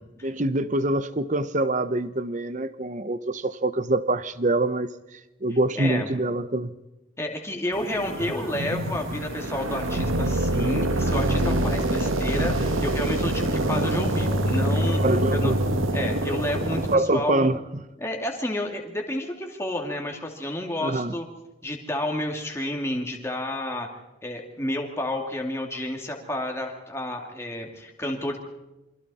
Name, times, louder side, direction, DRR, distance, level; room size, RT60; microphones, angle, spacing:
voice 1, 0.2-6.7 15.0-15.6 16.7-17.8 20.8-21.1, right 2 dB, 35° right, 14 dB, 0.8 m, -25 dB
voice 2, 5.7-6.1 7.2-15.0 15.3-15.5 15.9-17.5 18.0-21.3 21.6-23.9 24.2-28.4, left 1 dB, 15° left, 1 dB, 2.3 m, -30 dB
sound 1, 7.7-16.9, right 1 dB, 85° right, 1.9 m, -25 dB
28.0 x 24.0 x 4.3 m, 1.0 s
head